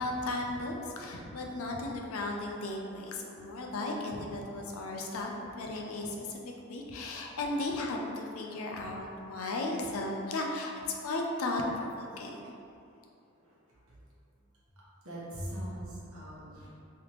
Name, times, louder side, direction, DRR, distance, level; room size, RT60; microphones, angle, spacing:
voice 1, 0.0-5.3 5.6-6.4 6.7-10.7 11.0-12.4, left 2 dB, 80° left, 0 dB, 0.5 m, -35 dB
voice 2, 15.0-16.7, equal, 85° right, -7 dB, 1.0 m, -40 dB
3.3 x 2.8 x 2.9 m, 2.7 s
head